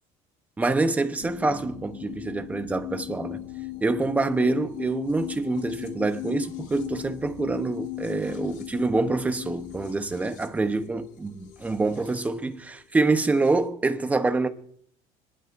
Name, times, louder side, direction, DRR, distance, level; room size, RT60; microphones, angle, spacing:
voice 1, 0.6-3.4 3.8-14.5, right 3 dB, 10° right, 0.9 m, -26 dB
sound 1, 1.2-13.7, left 15 dB, 70° left, 1.8 m, -38 dB
25.5 x 11.0 x 2.6 m
cardioid pair, 155°, 14 cm